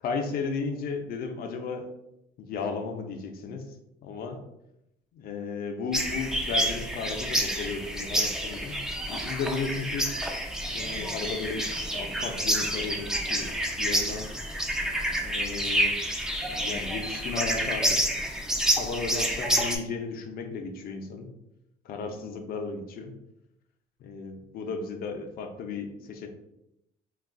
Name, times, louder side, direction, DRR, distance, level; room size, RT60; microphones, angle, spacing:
voice 1, 0.0-1.9 2.4-3.7 4.0-4.4 5.1-10.2 10.7-14.3 15.2-16.0 16.5-18.0 18.7-21.3 21.8-23.2 24.0-26.3, left 4 dB, 60° left, 5 dB, 0.5 m, -34 dB
sound 1, 5.9-19.8, equal, 5° right, 0.3 m, -28 dB
2.3 x 2.3 x 3.5 m, 0.84 s
cardioid pair, 110°, 17 cm